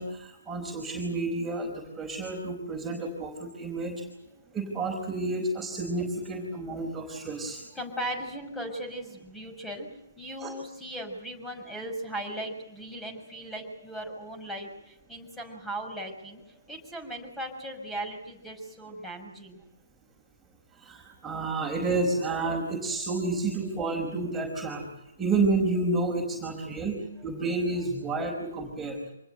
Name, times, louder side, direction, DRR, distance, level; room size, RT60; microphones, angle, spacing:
voice 1, 0.0-4.0 4.5-7.7 10.4-10.5 20.7-24.8 25.2-29.0, right 3 dB, 10° right, -2 dB, 5.0 m, -30 dB
voice 2, 7.7-9.9 10.2-19.6 23.3-23.4 23.8-24.1 26.7-26.9 28.1-28.2, right 1 dB, 5° left, 5 dB, 6.2 m, -38 dB
26.5 x 20.5 x 8.0 m, 0.83 s
figure-of-eight pair, 135°, 0 cm